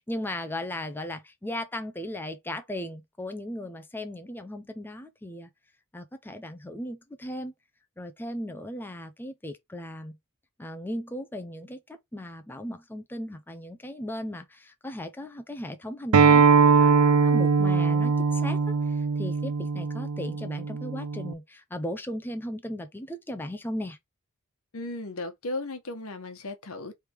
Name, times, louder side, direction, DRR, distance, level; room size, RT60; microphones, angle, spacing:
voice 1, 0.1-5.5 5.9-7.5 8.0-10.1 10.6-24.0, left 1 dB, 10° left, 0.5 m, -37 dB
Acoustic guitar, 16.1-21.3, right 5 dB, 80° right, 0.4 m, -21 dB
voice 2, 24.7-27.0, left 2 dB, 75° left, 1.0 m, -36 dB
3.3 x 3.3 x 4.4 m
head